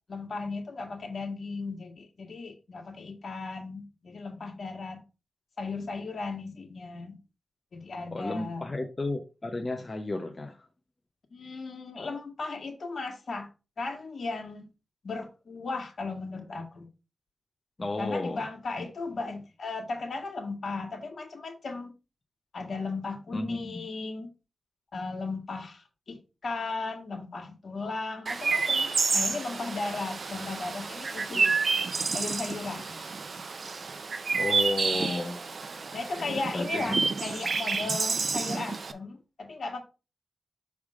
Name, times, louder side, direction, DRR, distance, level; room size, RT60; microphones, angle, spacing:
voice 1, 0.1-5.0 5.6-7.2 7.7-8.7 11.3-13.5 13.8-14.7 15.0-16.9 18.0-21.9 22.5-24.3 24.9-31.5 32.1-32.9 35.9-39.8, left 3 dB, 65° left, 1.7 m, -36 dB
voice 2, 8.1-10.7 17.8-18.4 23.3-23.9 34.4-35.9 36.2-37.0 37.9-38.0, left 2 dB, 30° left, 0.8 m, -33 dB
Chirp tweet, 28.3-38.9, right 4 dB, 60° right, 0.6 m, -29 dB
6.3 x 3.6 x 4.9 m
wide cardioid pair, 100°, 0 cm